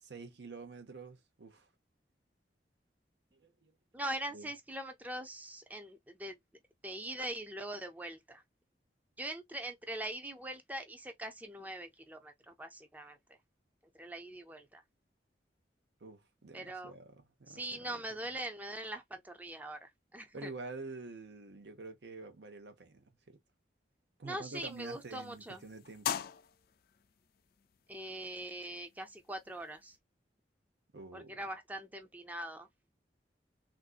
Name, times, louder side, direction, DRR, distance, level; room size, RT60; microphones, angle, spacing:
voice 1, 0.0-1.7 3.3-3.7 4.3-4.5 16.0-18.0 20.3-23.4 24.2-26.1 30.9-31.4, right 3 dB, 75° right, 0.7 m, -48 dB
voice 2, 3.9-6.4 6.8-8.4 9.2-13.2 14.0-14.8 16.5-16.9 17.5-20.5 24.2-25.6 27.9-30.0 31.1-32.7, right 1 dB, 10° right, 0.5 m, -42 dB
sound 1, 24.5-30.0, left 9 dB, 55° left, 0.4 m, -44 dB
3.4 x 2.6 x 2.4 m
head